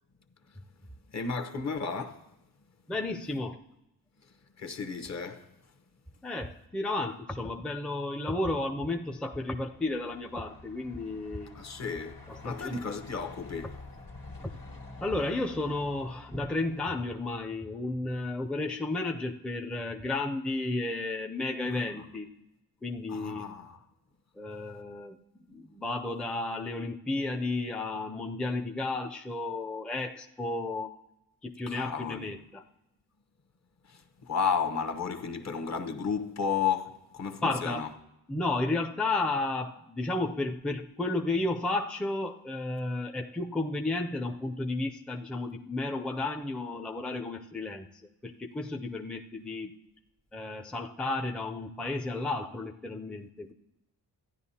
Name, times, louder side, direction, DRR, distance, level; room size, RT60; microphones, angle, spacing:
voice 1, 1.1-2.2 4.6-5.5 11.5-13.7 21.7-22.1 23.1-23.8 31.7-32.3 33.8-37.9, left 6 dB, 45° left, 1.0 m, -33 dB
voice 2, 2.9-3.6 6.2-11.6 12.3-12.8 15.0-22.3 22.8-23.4 24.4-25.2 25.5-30.9 31.4-32.6 37.4-37.9 38.3-49.7 50.3-53.5, left 2 dB, 5° left, 0.5 m, -33 dB
Truck, 8.6-18.0, left 3 dB, 65° left, 1.7 m, -49 dB
14.0 x 10.0 x 2.8 m
cardioid pair, 80°, 37 cm